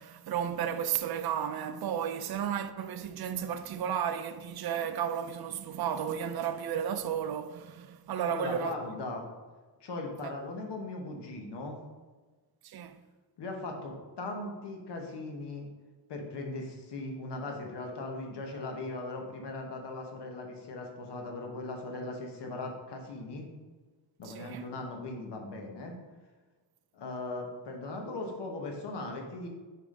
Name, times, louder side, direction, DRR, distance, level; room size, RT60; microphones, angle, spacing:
voice 1, 0.0-8.8 10.2-10.3 12.6-13.0 24.2-24.7, right 8 dB, 60° right, 0.5 m, -33 dB
voice 2, 8.3-9.3 9.8-11.8 13.4-15.7 16.1-23.5 24.2-25.9 26.9-29.5, left 2 dB, 75° left, 1.2 m, -39 dB
5.3 x 4.9 x 3.7 m
wide cardioid pair, 130°, 42 cm